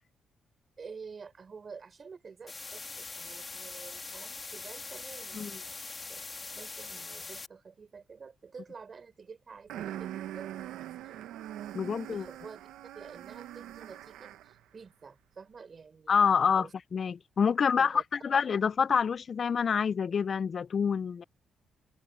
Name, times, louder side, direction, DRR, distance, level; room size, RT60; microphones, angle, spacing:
voice 1, 0.8-11.2 12.0-12.7 12.9-16.1 16.5-16.7 17.8-18.0, right 5 dB, 50° right, 6.4 m, -49 dB
sound 1, 2.5-7.5, left 3 dB, 35° left, 2.3 m, -42 dB
sound 2, 9.7-14.6, right 12 dB, 85° right, 1.0 m, -42 dB
voice 2, 11.7-12.3 16.1-16.7 16.9-21.2, left 6 dB, 55° left, 0.4 m, -27 dB
open air
supercardioid pair, 60°, 0 cm